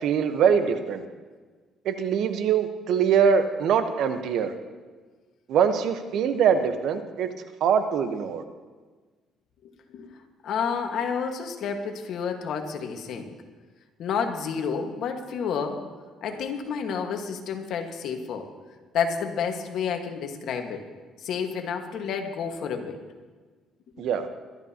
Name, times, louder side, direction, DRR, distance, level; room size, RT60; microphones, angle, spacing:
voice 1, 0.0-1.0 1.8-4.5 5.5-7.3 7.6-8.4 24.0-24.3, right 7 dB, 70° right, 8 dB, 1.1 m, -23 dB
voice 2, 9.6-10.1 10.4-13.3 14.0-15.8 16.2-18.5 18.9-20.8 21.2-23.0, left 6 dB, 70° left, 4 dB, 1.6 m, -30 dB
22.0 x 13.0 x 2.9 m, 1.4 s
cardioid pair, 95°, 0 cm